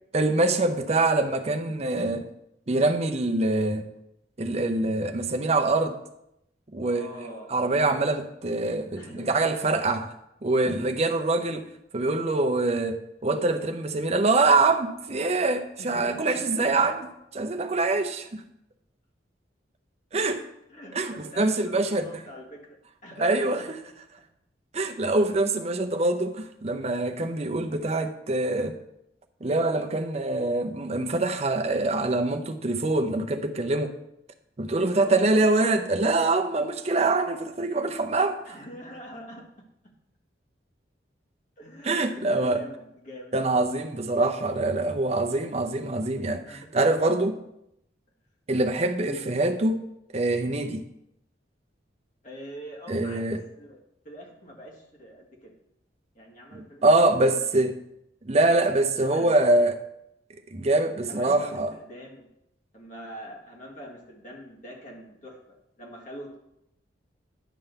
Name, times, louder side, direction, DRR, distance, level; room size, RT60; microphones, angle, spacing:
voice 1, 0.1-2.3 2.7-3.9 4.4-6.0 6.7-10.1 10.4-11.6 11.9-17.1 17.3-18.4 20.1-20.4 20.9-22.1 23.2-23.8 24.7-28.8 29.4-33.9 34.6-38.6 41.8-42.6 43.3-47.4 48.5-49.9 50.1-50.9 52.9-53.4 56.5-57.8 58.2-59.7 60.5-61.7, right 2 dB, 35° right, 0.7 m, -24 dB
voice 2, 6.8-7.5 9.0-9.7 15.8-16.9 17.7-17.8 20.7-23.7 35.0-35.6 38.5-39.5 41.6-43.4 46.4-46.7 49.0-49.3 52.2-55.5 56.2-57.4 59.0-59.6 61.0-62.3 62.7-66.4, equal, 45° left, 1.8 m, -43 dB
10.0 x 3.8 x 6.7 m
head